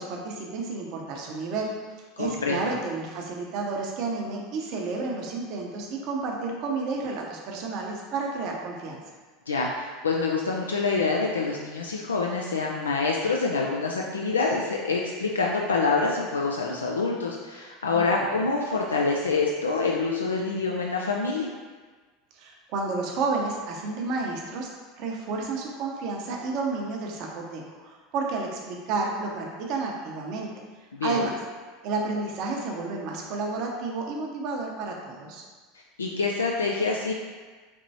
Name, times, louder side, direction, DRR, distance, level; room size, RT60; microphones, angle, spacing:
voice 1, 0.0-9.0 17.9-18.5 22.3-24.7 25.0-30.5 31.0-31.4 31.8-35.5, right 3 dB, 50° right, 0 dB, 0.7 m, -31 dB
voice 2, 2.2-2.7 9.5-21.5 30.9-31.2 36.0-37.1, left 4 dB, 80° left, -1 dB, 0.3 m, -26 dB
4.3 x 3.0 x 2.7 m, 1.4 s
figure-of-eight pair, 80°, 0 cm